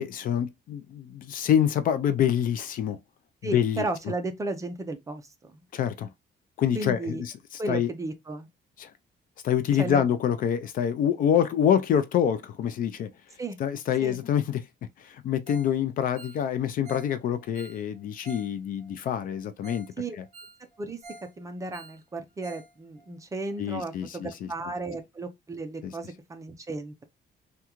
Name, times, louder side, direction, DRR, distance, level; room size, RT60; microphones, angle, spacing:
voice 1, 0.0-3.0 3.4-3.9 5.7-6.1 6.6-7.9 8.8-8.9 9.4-13.1 13.6-14.6 15.0-19.9 23.6-24.5 25.8-25.9, left 9 dB, 50° left, 0.4 m, -26 dB
voice 2, 3.4-5.6 6.7-7.2 7.6-8.5 9.8-10.0 13.4-13.6 14.0-14.2 20.0-20.2 20.8-21.0 21.4-27.0, right 2 dB, 20° right, 0.5 m, -34 dB
Ringtone, 15.5-15.8 16.0-18.5 18.8-18.9 19.3-19.4 19.6-19.9 20.2-21.3 21.6-22.7 23.0-23.1 23.5-23.6, right 2 dB, 40° right, 0.9 m, -47 dB
3.6 x 2.3 x 2.9 m
cardioid pair, 175°, 18 cm